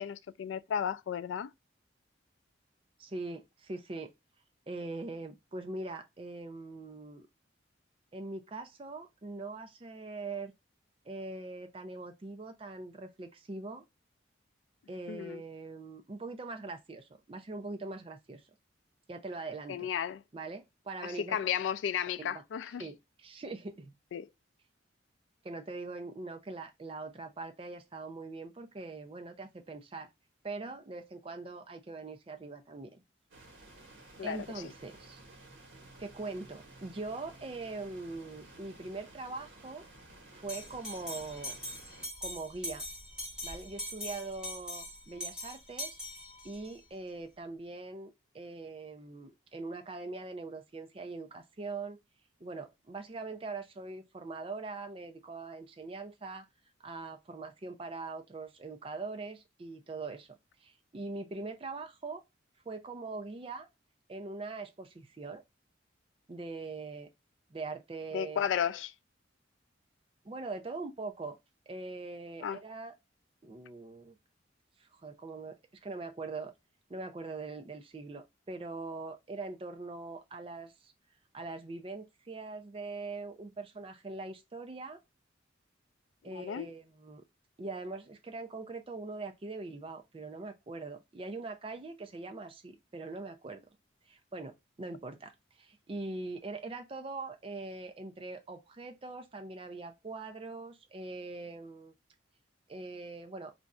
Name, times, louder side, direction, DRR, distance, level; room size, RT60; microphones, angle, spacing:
voice 1, 0.0-1.5 15.1-15.4 19.7-20.2 21.0-22.8 24.1-24.3 34.2-34.5 68.1-68.9 72.4-72.6 86.3-86.7, left 8 dB, 75° left, 0.3 m, -33 dB
voice 2, 3.0-4.1 4.7-7.3 8.1-10.5 11.1-13.8 14.9-18.4 19.1-19.9 20.3-21.4 22.2-22.4 22.8-23.9 25.4-30.1 30.4-33.0 34.2-35.2 36.0-39.8 40.3-41.5 42.2-42.8 43.4-46.0 46.4-52.0 52.4-56.5 56.8-60.3 60.6-62.2 62.7-63.7 64.1-65.4 66.3-67.1 67.5-68.5 70.2-71.4 71.7-72.9 73.4-74.2 74.8-75.6 75.8-76.5 76.9-80.9 81.3-85.0 86.2-87.2 87.6-93.6 94.1-101.9 102.7-103.5, right 3 dB, 30° right, 0.4 m, -42 dB
sound 1, 33.3-42.1, right 2 dB, 75° right, 1.1 m, -54 dB
Bell, 40.5-46.7, left 1 dB, 5° right, 1.1 m, -42 dB
2.5 x 2.3 x 4.1 m
head